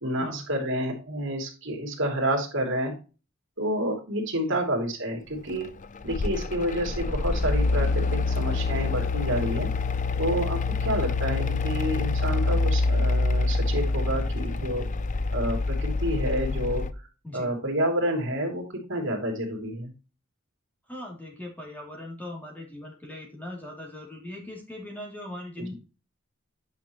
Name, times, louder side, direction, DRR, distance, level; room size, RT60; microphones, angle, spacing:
voice 1, 0.0-2.9 3.6-5.7 6.0-9.7 10.2-14.9 15.3-16.8 17.3-18.6 18.9-19.9, right 1 dB, 65° right, 1 dB, 2.9 m, -29 dB
Mechanical fan, 5.6-16.9, left 3 dB, 40° left, 0.5 m, -26 dB
voice 2, 12.3-12.6 17.2-17.5 20.9-25.7, left 1 dB, 10° left, 0 dB, 2.8 m, -40 dB
9.4 x 5.8 x 3.0 m, 0.32 s
head